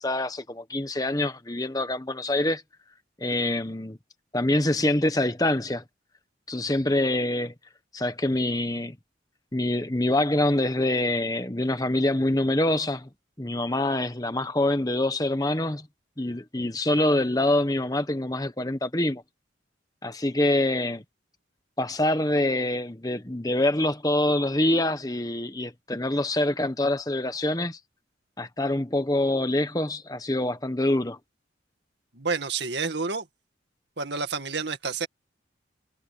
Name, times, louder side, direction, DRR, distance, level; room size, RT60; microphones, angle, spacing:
voice 1, 0.0-2.6 3.2-4.0 4.3-5.8 6.5-7.5 7.9-9.0 9.5-13.1 13.4-15.9 16.2-19.2 20.0-21.0 21.8-27.8 28.4-31.2, left 1 dB, 20° left, 1.2 m, -25 dB
voice 2, 32.1-33.3 34.0-35.1, right 4 dB, 70° right, 2.1 m, -29 dB
head